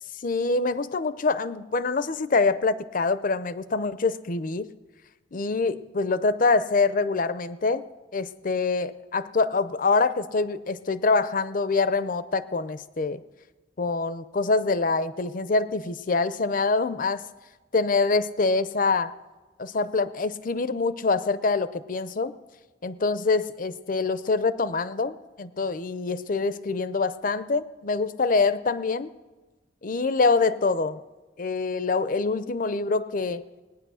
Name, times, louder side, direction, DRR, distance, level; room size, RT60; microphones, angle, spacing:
voice 1, 0.2-4.7 5.3-7.8 8.1-13.2 13.8-17.2 17.7-19.1 19.6-22.3 22.8-29.1 29.8-31.0 31.4-33.4, left 3 dB, 45° left, 14 dB, 0.6 m, -25 dB
19.5 x 9.6 x 6.3 m, 1.2 s
head